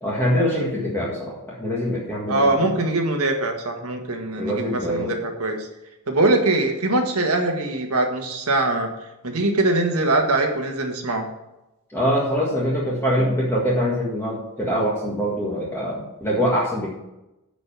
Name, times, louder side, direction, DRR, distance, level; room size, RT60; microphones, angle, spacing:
voice 1, 0.0-2.6 4.4-5.2 11.9-17.0, equal, 10° left, -6 dB, 1.8 m, -24 dB
voice 2, 2.3-5.6 6.1-8.9 9.2-11.3, right 2 dB, 70° right, 4 dB, 1.6 m, -22 dB
9.5 x 5.1 x 7.2 m, 0.94 s
head